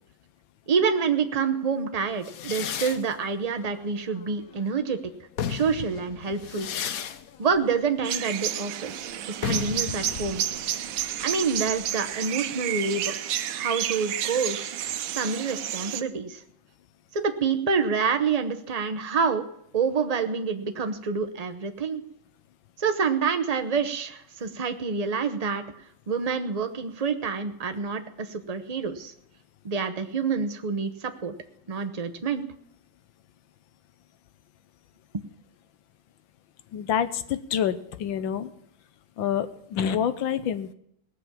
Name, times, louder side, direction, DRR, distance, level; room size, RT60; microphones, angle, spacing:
voice 1, 0.7-5.0 5.5-6.7 7.4-9.1 9.4-10.4 11.2-13.1 13.5-14.7 15.1-16.4 17.1-19.4 19.7-22.0 22.8-25.6 26.1-29.1 29.6-31.3 31.7-32.4, right 5 dB, 60° right, 7 dB, 0.4 m, -27 dB
sound 1, 2.2-4.7 5.2-12.7, left 9 dB, 60° left, 1.0 m, -36 dB
sound 2, 8.0-16.0, right 11 dB, 80° right, 1.5 m, -31 dB
voice 2, 36.7-38.5 39.2-40.7, left 9 dB, 75° left, 12 dB, 1.6 m, -27 dB
18.5 x 7.0 x 7.4 m, 0.72 s
omnidirectional pair, 2.2 m